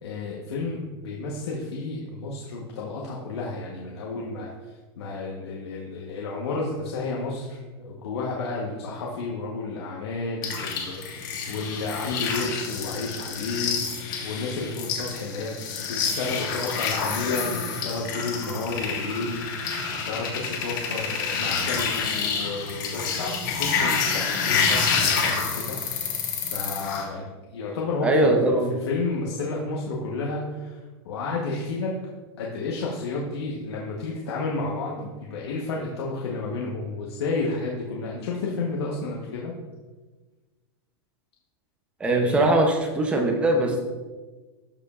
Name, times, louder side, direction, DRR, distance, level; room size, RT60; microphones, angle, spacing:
voice 1, 0.0-4.5 5.0-15.5 15.8-26.1 26.5-27.2 27.5-31.9 32.4-39.5 42.0-42.5, left 3 dB, 75° left, -2 dB, 1.1 m, -31 dB
sound 1, 10.4-27.0, left 5 dB, 50° left, 1.4 m, -28 dB
voice 2, 28.0-28.7 42.0-43.8, right 2 dB, 10° right, 3 dB, 0.6 m, -21 dB
12.5 x 5.1 x 2.4 m, 1.3 s
supercardioid pair, 170°, 14 cm